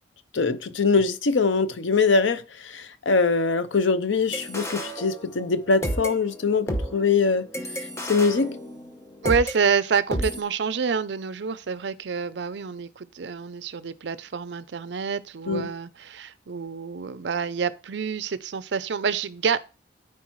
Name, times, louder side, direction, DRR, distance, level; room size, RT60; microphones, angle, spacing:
voice 1, 0.3-7.4 8.0-8.6 15.5-15.7, left 4 dB, 90° left, 0.7 m, -23 dB
sound 1, 4.3-5.5 5.8-9.6 10.1-10.4, equal, 15° left, 0.8 m, -31 dB
voice 2, 9.2-19.6, right 5 dB, 70° right, 0.5 m, -27 dB
13.5 x 4.5 x 3.1 m
head